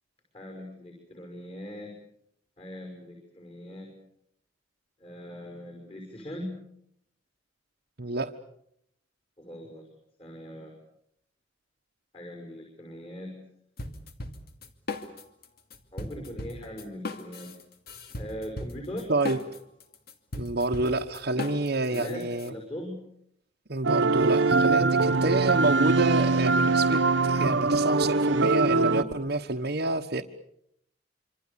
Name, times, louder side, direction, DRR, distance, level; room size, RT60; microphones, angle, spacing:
voice 1, 0.3-1.9 2.6-3.9 5.0-6.6 9.4-9.9 10.2-10.7 12.1-13.4 15.9-17.5 18.2-19.1 21.9-23.0 25.0-25.2, equal, 30° left, 3 dB, 6.1 m, -40 dB
voice 2, 8.0-8.3 19.1-19.4 20.3-22.5 23.7-30.2, right 2 dB, 60° right, 0 dB, 1.3 m, -28 dB
sound 1, 13.8-15.5 15.7-22.5, left 2 dB, 55° left, 2.8 m, -37 dB
sound 2, 23.8-29.0, right 3 dB, 80° right, 1.5 m, -22 dB
27.0 x 26.5 x 7.1 m, 0.74 s
head